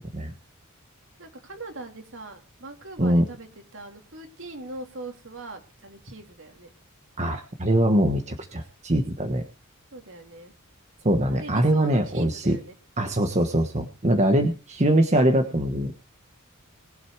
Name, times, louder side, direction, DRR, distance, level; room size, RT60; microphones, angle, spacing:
voice 1, 1.2-6.7 9.9-10.5 11.3-12.7, right 2 dB, 60° right, 4 dB, 3.2 m, -41 dB
voice 2, 7.2-9.4 11.0-12.6 13.0-15.9, right 1 dB, 35° right, 5 dB, 1.3 m, -22 dB
21.0 x 8.1 x 4.8 m, 0.33 s
head